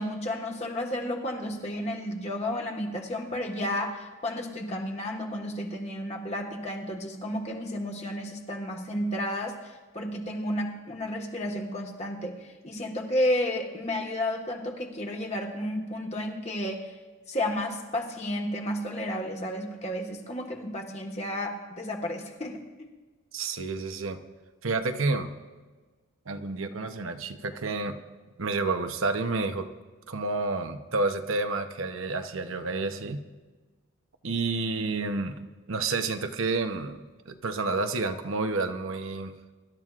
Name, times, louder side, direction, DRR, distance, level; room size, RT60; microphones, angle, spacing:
voice 1, 0.0-16.9 17.3-22.6, left 1 dB, 30° left, 1 dB, 1.4 m, -32 dB
voice 2, 23.3-24.2 24.6-25.3 26.3-28.0 28.4-29.7 30.1-33.2 34.2-35.4 35.7-39.3, right 3 dB, 65° right, 7 dB, 0.9 m, -30 dB
24.0 x 12.5 x 2.5 m, 1.3 s
head